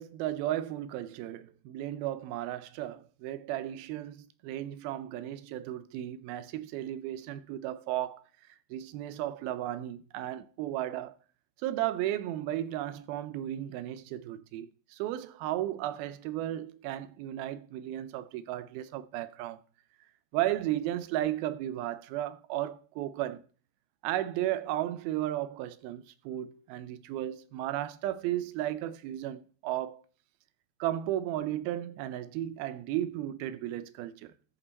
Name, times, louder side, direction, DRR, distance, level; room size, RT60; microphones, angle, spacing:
voice 1, 0.0-8.2 8.7-11.2 11.6-19.6 20.3-23.4 24.0-30.0 30.8-34.3, right 13 dB, 90° right, 2.5 m, -34 dB
13.5 x 5.6 x 4.0 m
omnidirectional pair, 4.2 m